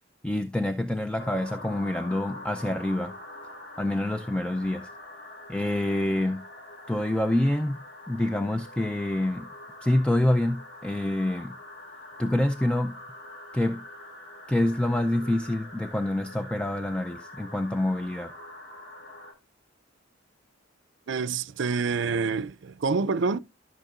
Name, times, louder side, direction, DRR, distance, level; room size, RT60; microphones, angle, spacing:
voice 1, 0.2-3.2 3.8-4.9 5.5-6.4 6.9-9.5 9.8-11.6 12.2-13.0 13.5-13.9 14.5-18.3, left 1 dB, 5° left, 0.4 m, -27 dB
sound 1, 1.2-19.3, left 1 dB, 65° left, 4.0 m, -45 dB
voice 2, 21.1-23.4, right 4 dB, 65° right, 0.5 m, -27 dB
13.5 x 5.9 x 2.4 m
head